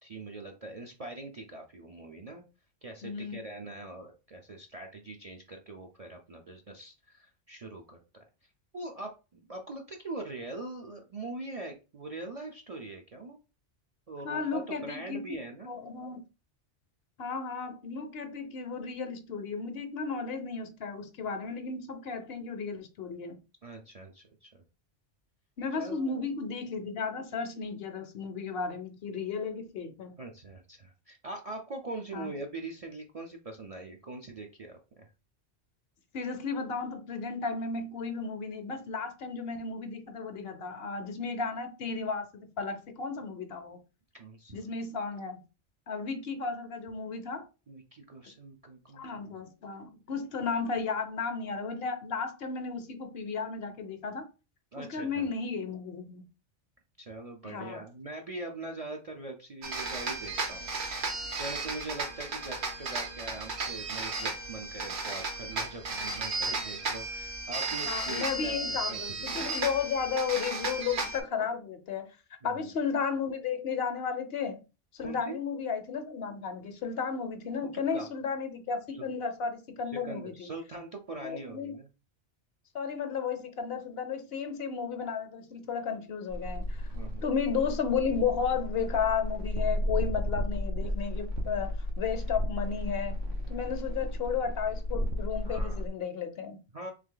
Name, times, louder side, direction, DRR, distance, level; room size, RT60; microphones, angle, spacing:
voice 1, 0.0-2.5 2.8-8.0 8.7-13.4 14.1-15.7 23.6-24.6 25.8-26.2 30.2-35.1 44.1-44.6 47.7-49.2 54.7-55.3 57.0-60.7 61.4-69.3 72.4-72.7 75.0-75.4 77.9-78.1 78.9-79.1 79.9-81.9 86.9-87.3 95.4-95.8 96.7-96.9, right 2 dB, 45° right, 0.5 m, -42 dB
voice 2, 3.0-3.4 14.2-15.2 15.7-16.2 17.2-23.4 25.6-30.1 32.1-32.3 36.1-43.8 44.5-45.4 45.9-47.5 48.9-54.3 54.8-56.2 57.4-57.8 67.8-72.1 72.4-74.6 74.9-80.5 81.2-81.8 82.7-86.8 87.2-93.2 93.5-96.6, left 5 dB, 60° left, 0.8 m, -34 dB
sound 1, 59.6-71.2, right 3 dB, 65° right, 1.2 m, -34 dB
sound 2, 86.3-95.9, left 1 dB, 90° right, 1.3 m, -33 dB
3.4 x 3.1 x 3.7 m
omnidirectional pair, 1.2 m